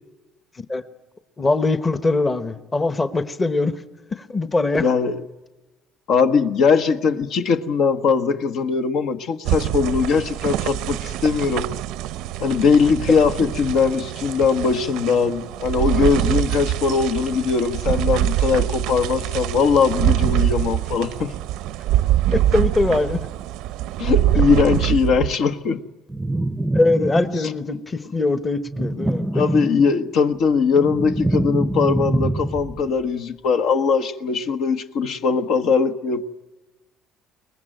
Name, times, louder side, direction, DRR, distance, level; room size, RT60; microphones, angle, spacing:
voice 1, 1.4-3.8 4.1-4.9 22.3-23.3 26.7-29.4, left 2 dB, 20° left, 12 dB, 1.1 m, -22 dB
voice 2, 4.8-5.2 6.1-11.7 12.4-21.3 24.0-25.8 29.3-36.2, left 5 dB, 65° left, 9 dB, 1.3 m, -20 dB
sound 1, 9.4-25.4, right 13 dB, 80° right, 0.7 m, -24 dB
sound 2, 26.1-27.7 28.6-30.1 30.5-32.9, right 2 dB, 10° right, 0.7 m, -25 dB
23.0 x 20.0 x 9.1 m, 1.1 s
cardioid pair, 110°, 0 cm